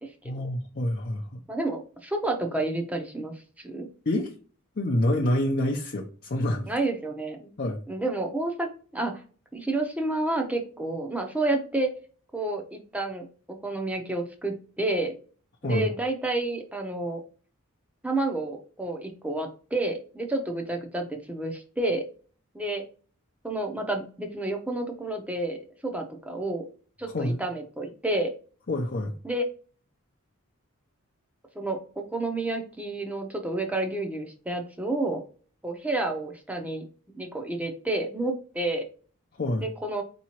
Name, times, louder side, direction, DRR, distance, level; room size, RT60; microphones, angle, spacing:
voice 1, 0.2-1.4 4.1-4.3 4.8-6.7 7.6-7.8 15.6-15.9 27.1-27.4 28.7-29.2 39.4-39.7, left 1 dB, 45° left, 0 dB, 0.6 m, -27 dB
voice 2, 1.5-3.9 6.7-7.5 7.9-9.2 9.5-11.9 12.3-13.3 13.6-15.1 15.6-17.2 18.0-22.0 22.5-22.8 23.4-26.6 27.0-28.3 29.2-29.4 31.5-35.2 35.6-38.8 39.6-40.0, right 2 dB, 5° right, 3 dB, 0.7 m, -30 dB
4.6 x 3.0 x 2.9 m, 0.40 s
head